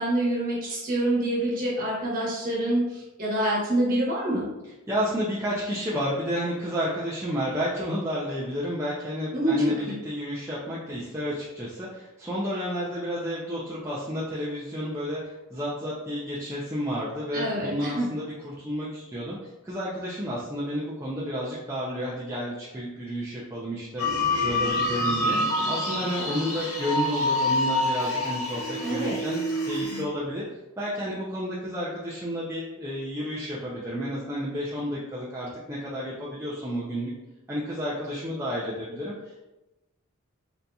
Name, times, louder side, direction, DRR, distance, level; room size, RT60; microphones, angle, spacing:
voice 1, 0.0-4.5 9.3-9.9 17.3-18.0 28.8-29.2, right 1 dB, 40° right, -5 dB, 1.1 m, -26 dB
voice 2, 4.9-30.4 30.8-37.1 37.5-39.5, equal, 10° right, -7 dB, 0.4 m, -31 dB
sound 1, 24.0-30.0, left 1 dB, 85° left, 0.9 m, -27 dB
3.9 x 2.7 x 2.3 m, 1.0 s
head